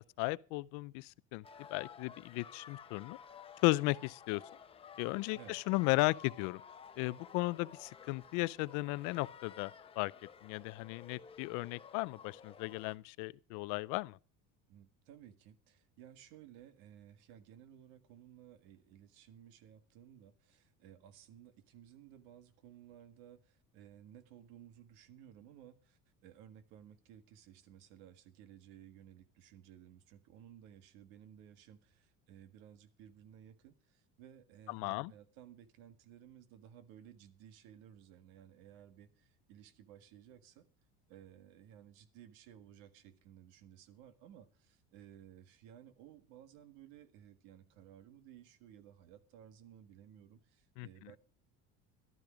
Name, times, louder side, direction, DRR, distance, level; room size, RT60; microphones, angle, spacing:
voice 1, 0.2-1.4 1.7-3.2 3.6-4.4 5.0-6.6 7.0-10.1 10.4-14.2 34.7-35.1 50.8-51.1, left 23 dB, 70° left, 0.5 m, -35 dB
sound 1, 1.4-13.0, left 7 dB, 15° left, 0.8 m, -54 dB
voice 2, 14.7-40.7 41.1-51.2, right 10 dB, 85° right, 1.7 m, -57 dB
13.5 x 12.5 x 5.0 m
cardioid pair, 170°, 32 cm